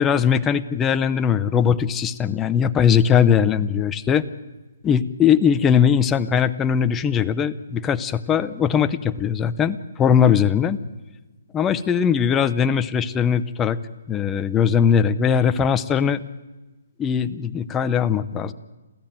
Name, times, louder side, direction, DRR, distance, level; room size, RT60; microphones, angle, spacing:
voice 1, 0.0-4.2 4.8-10.8 11.5-13.8 14.1-16.2 17.0-18.5, left 7 dB, 15° left, 11 dB, 0.7 m, -20 dB
27.5 x 15.5 x 9.0 m, 1.2 s
hypercardioid pair, 160°, 0 cm